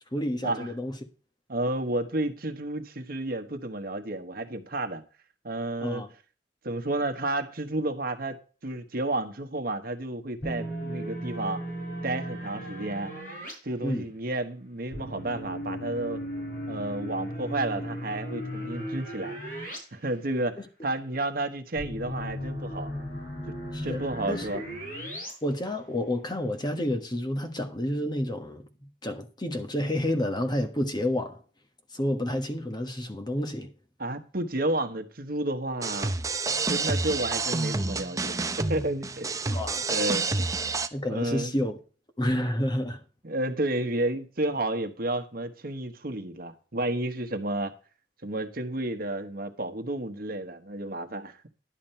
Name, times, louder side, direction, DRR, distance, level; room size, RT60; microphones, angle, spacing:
voice 1, 0.1-1.0 5.8-6.1 13.8-14.1 23.7-24.0 24.3-24.6 25.4-28.6 29.0-31.4 31.9-33.7 39.5-39.9 40.9-41.8 42.2-43.0, left 1 dB, 25° left, 1.3 m, -29 dB
voice 2, 1.5-5.0 5.4-6.0 6.6-11.6 12.0-13.1 13.6-16.2 16.7-19.4 19.9-22.9 23.8-24.6 34.0-36.1 36.7-39.3 39.9-40.5 41.1-41.5 43.2-47.7 48.2-51.5, right 2 dB, 50° right, 1.2 m, -31 dB
sound 1, 10.4-13.5 14.9-19.8 20.1-20.2 21.8-25.3, equal, 50° left, 5.9 m, -36 dB
sound 2, 35.8-40.9, right 3 dB, 20° right, 0.6 m, -29 dB
11.0 x 7.3 x 4.4 m
head